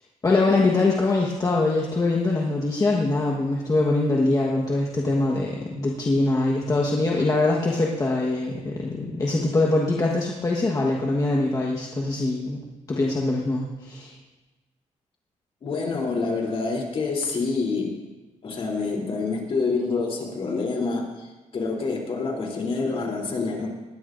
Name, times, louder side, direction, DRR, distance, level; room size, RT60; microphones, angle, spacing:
voice 1, 0.2-12.6 12.9-14.1, left 2 dB, 30° left, -2 dB, 1.4 m, -23 dB
voice 2, 15.6-18.1 18.4-23.7, left 4 dB, 50° left, 0 dB, 3.4 m, -27 dB
20.0 x 17.0 x 2.6 m, 1.1 s
wide cardioid pair, 145°, 13 cm